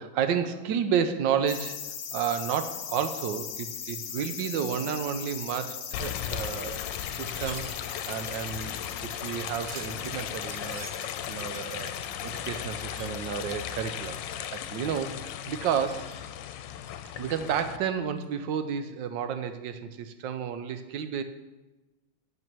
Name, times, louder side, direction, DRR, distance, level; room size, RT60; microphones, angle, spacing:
voice 1, 0.0-1.8 2.1-7.7 8.1-10.9 11.3-11.9 12.2-16.1 17.2-21.2, right 7 dB, 85° right, 9 dB, 1.4 m, -31 dB
sound 1, 1.5-15.6 15.9-16.0, left 8 dB, 60° left, 1.0 m, -40 dB
sound 2, 5.9-17.8, left 10 dB, 85° left, 1.3 m, -36 dB
Wind chime, 7.2-14.3 14.6-15.4 15.8-16.3 16.8-17.7 18.1-18.3, right 6 dB, 55° right, 0.9 m, -50 dB
9.1 x 6.1 x 6.0 m, 1.1 s
omnidirectional pair, 2.0 m